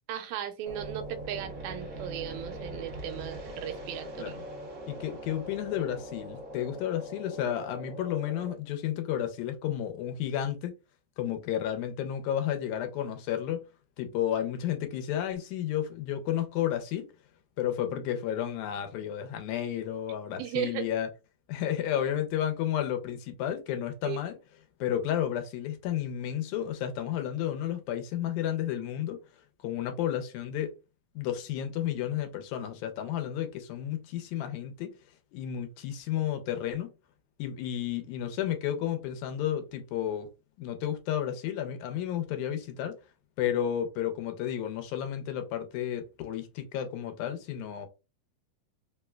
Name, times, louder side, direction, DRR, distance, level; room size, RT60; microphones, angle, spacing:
voice 1, 0.1-4.4 20.4-20.9 24.1-24.2, right 10 dB, 85° right, 1.9 m, -36 dB
sound 1, 0.7-8.5, right 1 dB, 65° right, 1.5 m, -41 dB
voice 2, 4.9-10.7 11.2-13.6 14.0-17.1 17.6-21.1 21.5-24.4 24.8-29.2 29.6-30.7 31.2-34.9 35.3-36.9 37.4-40.3 40.6-42.9 43.4-47.9, left 10 dB, 80° left, 2.0 m, -32 dB
4.7 x 2.2 x 2.2 m
omnidirectional pair, 3.3 m